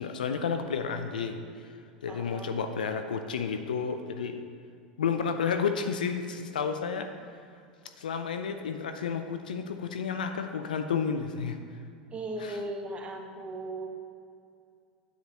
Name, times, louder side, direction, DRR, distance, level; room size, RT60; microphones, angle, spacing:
voice 1, 0.0-1.7 2.0-4.4 5.0-7.1 8.0-11.6 12.4-12.6, left 6 dB, 80° left, 8 dB, 0.5 m, -31 dB
voice 2, 2.1-2.6 12.1-13.9, right 1 dB, 25° right, 3 dB, 1.3 m, -37 dB
9.7 x 9.2 x 3.0 m, 2.4 s
hypercardioid pair, 85°, 5 cm